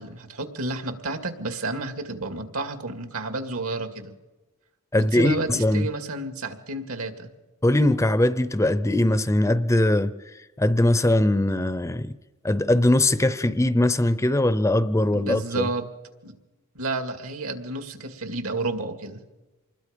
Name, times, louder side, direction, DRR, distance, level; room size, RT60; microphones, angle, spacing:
voice 1, 0.0-4.1 4.9-7.3 15.1-15.9 16.2-16.3 16.7-19.2, right 2 dB, 75° right, 2.2 m, -31 dB
voice 2, 4.9-5.9 7.6-12.1 12.4-15.7, left 1 dB, 15° left, 0.6 m, -21 dB
26.0 x 21.0 x 5.2 m
head